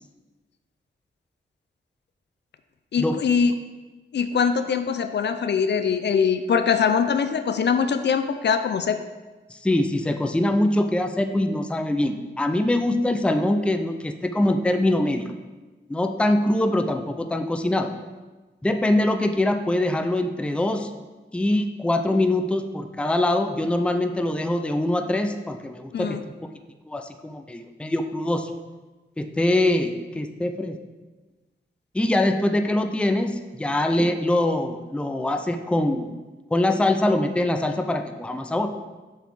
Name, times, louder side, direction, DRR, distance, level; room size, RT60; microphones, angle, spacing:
voice 1, 2.9-3.5 4.1-9.0 25.9-26.2, left 6 dB, 60° left, 9 dB, 0.5 m, -22 dB
voice 2, 9.5-15.3 15.9-17.9 18.6-20.9 21.3-26.5 26.9-28.5 29.2-30.8 31.9-36.2 36.5-38.7, left 1 dB, 5° left, 7 dB, 0.4 m, -23 dB
6.8 x 4.0 x 4.7 m, 1.2 s
wide cardioid pair, 90°, 20 cm